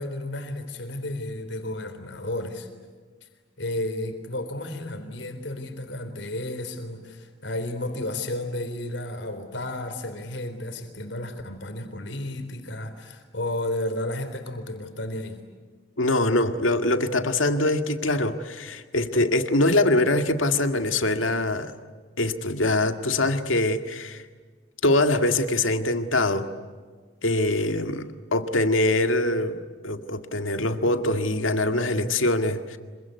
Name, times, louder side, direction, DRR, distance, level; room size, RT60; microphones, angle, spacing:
voice 1, 0.0-2.7 3.2-3.3 3.6-15.4, left 1 dB, 70° left, 8 dB, 3.9 m, -32 dB
voice 2, 16.0-21.7 22.2-24.2 24.8-26.5 27.2-29.6 29.8-32.8, left 2 dB, 85° left, 7 dB, 2.0 m, -23 dB
26.5 x 24.0 x 9.5 m, 1.5 s
head